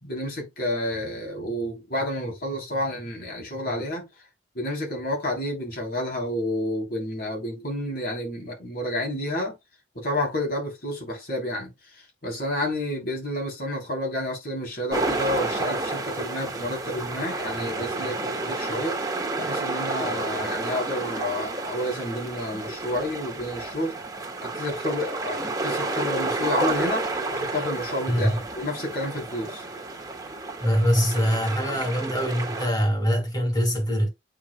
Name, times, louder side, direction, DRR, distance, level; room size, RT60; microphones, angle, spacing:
voice 1, 0.0-4.1 4.5-9.6 9.9-19.0 19.4-24.0 24.4-29.6, left 1 dB, 60° left, 3.3 m, -30 dB
sound 1, 14.9-32.7, right 2 dB, 20° right, 1.8 m, -30 dB
voice 2, 30.6-34.1, equal, 25° left, 3.0 m, -23 dB
8.6 x 5.2 x 2.2 m
head